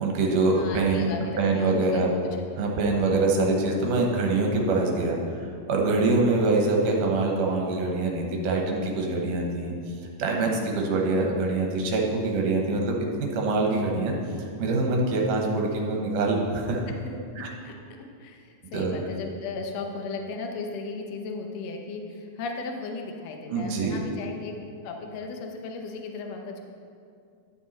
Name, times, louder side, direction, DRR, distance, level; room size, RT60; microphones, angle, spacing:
voice 1, 0.0-2.1 2.6-5.2 5.7-9.7 10.2-14.2 14.6-17.0 17.4-17.5 18.7-19.0 23.5-24.0, right 3 dB, 75° right, 0 dB, 2.5 m, -24 dB
voice 2, 0.5-2.0 2.9-3.2 6.0-6.2 10.4-10.7 17.4-17.7 18.2-24.5 24.8-26.6, left 4 dB, 70° left, 2 dB, 1.7 m, -36 dB
11.0 x 6.8 x 4.2 m, 2.4 s
omnidirectional pair, 3.8 m